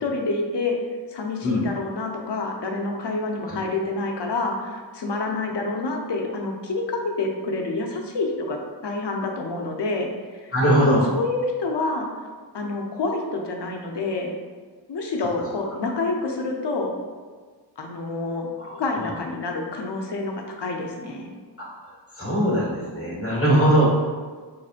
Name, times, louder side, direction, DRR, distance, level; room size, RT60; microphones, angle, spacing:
voice 1, 0.0-0.8 1.1-10.5 10.8-12.1 12.5-14.3 14.9-16.9 17.8-18.5 18.8-21.3, left 3 dB, 65° left, 1 dB, 0.7 m, -28 dB
voice 2, 10.5-11.1 18.6-19.1 22.2-23.9, right 1 dB, 30° left, -5 dB, 1.3 m, -21 dB
4.2 x 3.2 x 2.4 m, 1.5 s
wide cardioid pair, 65°, 45 cm